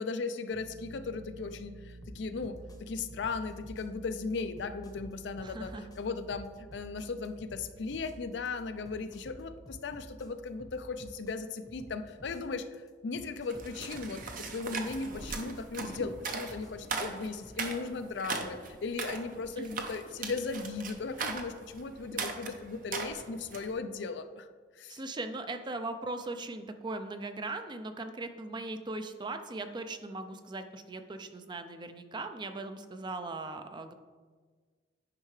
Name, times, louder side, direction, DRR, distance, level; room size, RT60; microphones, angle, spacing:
voice 1, 0.0-12.7 13.0-24.5 24.8-25.0, left 4 dB, 70° left, 10 dB, 0.5 m, -37 dB
sound 1, 0.5-11.0, right 2 dB, 80° right, 0.6 m, -52 dB
sound 2, 2.0-17.8, left 1 dB, 20° left, 0.8 m, -52 dB
voice 2, 5.4-5.9 19.6-19.7 24.9-33.9, right 2 dB, 25° right, 8 dB, 0.4 m, -39 dB
sound 3, 13.5-23.7, right 4 dB, 50° right, 0.7 m, -39 dB
9.6 x 5.6 x 3.2 m, 1.5 s
head